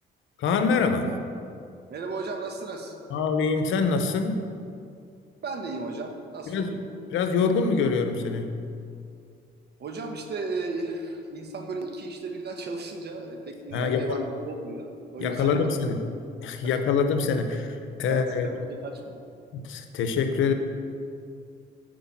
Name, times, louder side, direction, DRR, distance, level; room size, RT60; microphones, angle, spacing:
voice 1, 0.4-1.1 3.1-4.5 6.5-6.8 7.1-8.6 13.7-14.2 15.2-16.0 16.4-18.5 19.5-20.5, left 5 dB, 80° left, 7 dB, 0.9 m, -25 dB
voice 2, 1.9-3.0 5.4-6.8 9.8-15.8 16.6-16.8 18.1-19.2, right 3 dB, 55° right, 4 dB, 1.3 m, -35 dB
10.0 x 4.7 x 7.3 m, 2.4 s
cardioid pair, 90°, 20 cm